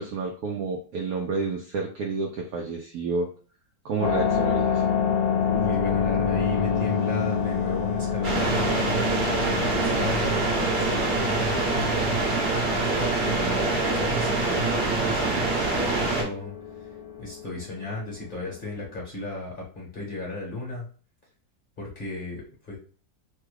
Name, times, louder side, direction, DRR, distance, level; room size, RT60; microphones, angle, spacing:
voice 1, 0.0-3.3 3.8-4.8, right 4 dB, 75° right, 1 dB, 0.8 m, -30 dB
sound 1, 4.0-19.0, left 7 dB, 70° left, 1.1 m, -29 dB
voice 2, 5.5-8.8 9.6-12.2 13.1-16.5 17.2-20.8 21.8-22.8, left 2 dB, 35° left, -3 dB, 1.1 m, -35 dB
sound 2, 8.2-16.2, right 3 dB, 45° right, 1.0 m, -25 dB
3.1 x 2.3 x 3.2 m, 0.39 s
omnidirectional pair, 2.0 m